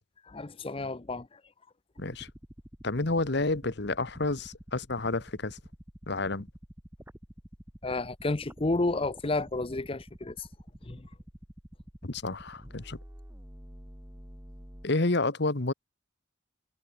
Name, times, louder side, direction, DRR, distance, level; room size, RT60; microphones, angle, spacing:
voice 1, 0.3-1.3 7.8-10.5 10.9-11.1, left 2 dB, 30° left, 0.7 m, -31 dB
sound 1, 2.0-14.9, equal, 10° right, 1.8 m, -49 dB
voice 2, 2.8-5.6 6.1-6.5 12.0-13.0 14.8-15.7, left 2 dB, 55° left, 1.3 m, -29 dB
head